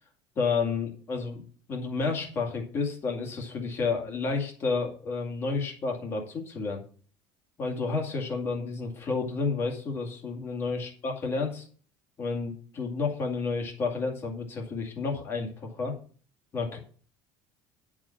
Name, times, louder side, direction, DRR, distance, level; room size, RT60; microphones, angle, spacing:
voice 1, 0.4-1.4 1.7-6.8 7.6-11.7 12.2-15.9 16.5-16.8, left 4 dB, 25° left, 1 dB, 2.2 m, -30 dB
10.5 x 4.9 x 7.2 m, 0.43 s
cardioid pair, 180°, 9 cm